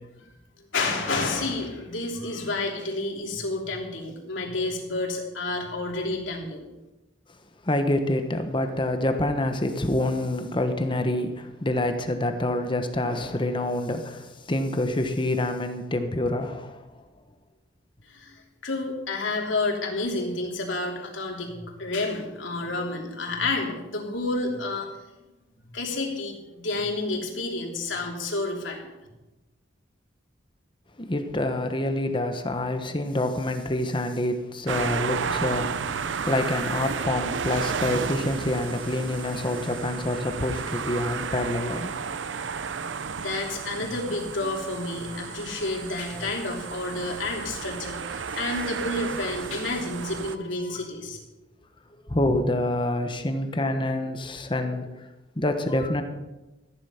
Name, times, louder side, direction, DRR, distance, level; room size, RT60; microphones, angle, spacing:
voice 1, 0.7-6.6 18.0-24.9 25.7-28.9 42.2-42.4 43.1-51.2, left 2 dB, 90° left, 0 dB, 3.2 m, -30 dB
voice 2, 7.6-16.8 31.0-42.1 52.1-54.9 55.4-56.0, left 1 dB, 25° left, 6 dB, 1.1 m, -27 dB
sound 1, 34.7-50.4, right 6 dB, 80° right, 0.6 m, -32 dB
15.0 x 10.5 x 5.8 m, 1.1 s
head